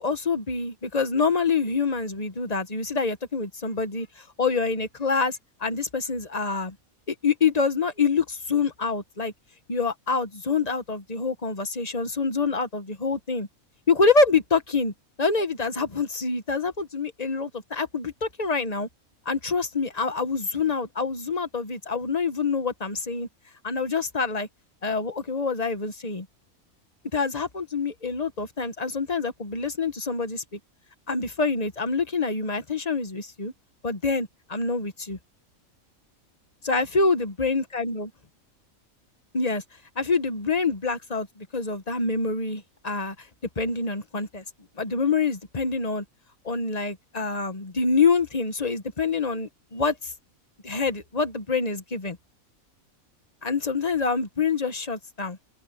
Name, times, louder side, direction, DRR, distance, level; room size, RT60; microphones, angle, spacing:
voice 1, 0.0-4.1 4.4-6.7 7.2-9.3 9.7-13.5 13.9-14.9 15.2-18.9 19.2-23.3 23.6-24.5 24.8-26.2 27.1-30.6 31.1-33.5 33.8-35.2 36.6-38.1 39.3-39.6 40.0-41.3 41.5-43.1 43.6-44.4 44.8-46.0 46.4-49.9 50.6-52.2 53.4-55.4, left 4 dB, 30° left, 1.4 m, -26 dB
open air
omnidirectional pair, 1.5 m